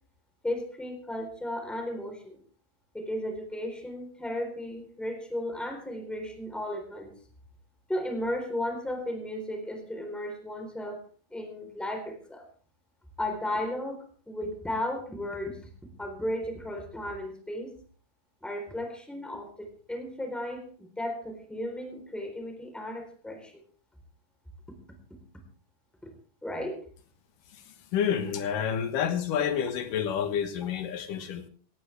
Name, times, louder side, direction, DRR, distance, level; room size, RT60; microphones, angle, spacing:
voice 1, 0.4-2.4 2.9-7.1 7.9-11.0 11.3-12.4 13.2-15.6 16.0-17.7 18.4-23.6 26.0-26.1 26.4-26.8, left 1 dB, ahead, 4 dB, 3.5 m, -35 dB
voice 2, 27.9-31.4, left 8 dB, 80° left, 8 dB, 3.0 m, -29 dB
18.0 x 16.5 x 3.5 m, 0.42 s
omnidirectional pair, 3.8 m